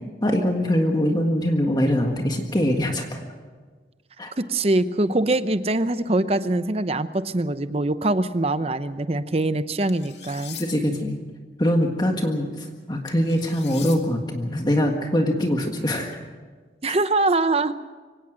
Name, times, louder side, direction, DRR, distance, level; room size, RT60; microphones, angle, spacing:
voice 1, 0.2-3.2 4.2-4.3 10.6-11.2 11.6-16.2 16.9-17.0, equal, 25° left, 3 dB, 1.7 m, -23 dB
voice 2, 4.4-10.6 16.8-17.7, right 2 dB, 35° right, 12 dB, 0.8 m, -23 dB
sound 1, 9.9-10.7 13.1-14.0, left 10 dB, 80° left, 2.2 m, -40 dB
24.5 x 17.5 x 6.4 m, 1.4 s
head